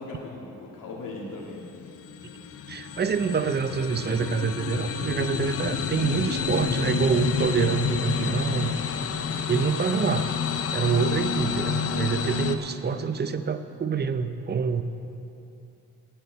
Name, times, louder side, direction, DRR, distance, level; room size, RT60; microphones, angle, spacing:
voice 1, 0.0-1.6, left 2 dB, 70° left, -3 dB, 2.7 m, -38 dB
sound 1, 1.0-12.6, left 6 dB, 45° left, 0.8 m, -29 dB
voice 2, 2.7-8.7 9.5-10.3 10.7-14.8, right 6 dB, 30° right, 10 dB, 0.6 m, -26 dB
10.0 x 8.1 x 9.1 m, 2.8 s
cardioid pair, 105°, 33 cm